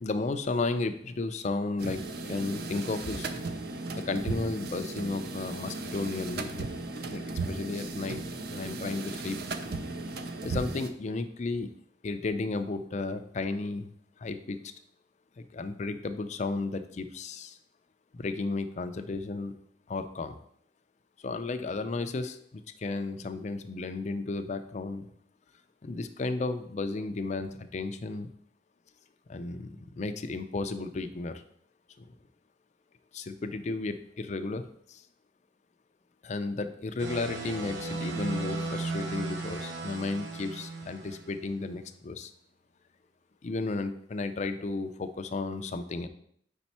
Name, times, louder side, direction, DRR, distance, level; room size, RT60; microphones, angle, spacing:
voice 1, 0.0-2.0 2.3-3.3 3.9-6.7 7.1-8.2 8.5-9.4 10.4-11.7 12.0-13.9 14.2-14.6 15.4-17.6 18.1-19.5 19.9-20.4 21.2-25.1 25.8-28.3 29.3-31.4 32.0-32.1 33.1-35.0 36.2-42.3 43.4-46.1, left 3 dB, 40° left, 9 dB, 0.4 m, -33 dB
sound 1, 1.8-10.9, right 3 dB, 60° right, 0.5 m, -36 dB
sound 2, 37.0-41.4, right 3 dB, 85° right, 0.8 m, -36 dB
5.0 x 4.4 x 4.2 m, 0.66 s
head